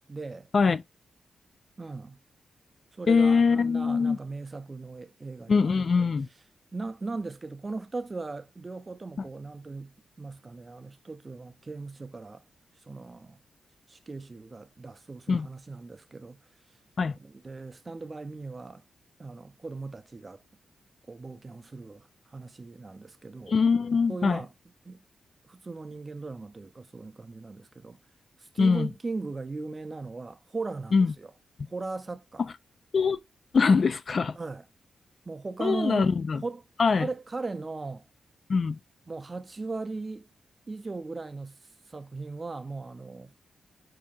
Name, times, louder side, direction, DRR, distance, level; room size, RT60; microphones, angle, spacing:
voice 1, 0.1-0.5 1.8-2.2 3.0-6.0 6.7-9.9 10.2-12.4 12.9-13.4 13.9-16.4 17.2-18.8 19.2-20.4 21.1-23.6 24.1-24.5 24.8-25.0 25.4-28.0 28.4-31.3 31.7-32.4 34.3-34.6 35.3-36.1 36.4-36.6 37.0-38.0 39.1-40.3 40.7-41.6 41.9-43.3, right 3 dB, 35° right, 0.5 m, -38 dB
voice 2, 3.1-4.2 5.5-6.3 15.3-15.5 17.0-17.2 23.5-24.4 28.6-28.9 30.9-31.1 32.9-33.2 33.5-34.4 35.6-36.4 36.8-37.1 38.5-38.8, left 5 dB, 55° left, 0.3 m, -23 dB
4.4 x 2.8 x 3.6 m
cardioid pair, 55°, 0 cm